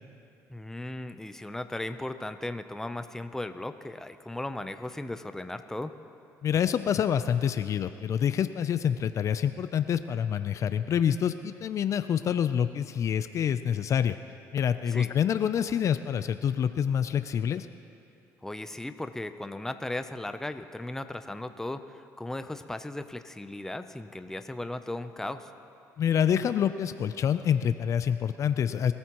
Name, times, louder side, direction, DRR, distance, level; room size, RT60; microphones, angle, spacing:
voice 1, 0.5-5.9 14.9-15.1 18.4-25.5, left 1 dB, 5° left, 9 dB, 0.6 m, -36 dB
voice 2, 6.4-14.2 14.5-17.7 26.0-28.9, left 8 dB, 50° left, 11 dB, 0.5 m, -27 dB
22.5 x 14.0 x 3.0 m, 2.8 s
cardioid pair, 100°, 7 cm